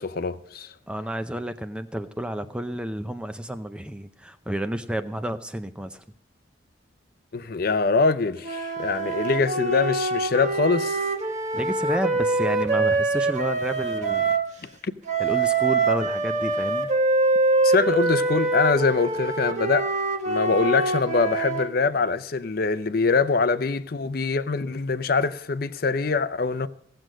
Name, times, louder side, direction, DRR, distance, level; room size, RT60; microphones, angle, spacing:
voice 1, 0.0-0.7 7.3-11.1 14.8-14.9 17.6-19.9 20.3-26.7, left 4 dB, 50° left, 0.5 m, -24 dB
voice 2, 0.9-6.0 11.5-14.4 15.2-16.9, right 1 dB, 5° right, 0.5 m, -30 dB
sound 1, 8.4-14.5 15.1-21.7, right 3 dB, 35° right, 1.2 m, -24 dB
16.5 x 7.7 x 6.3 m
head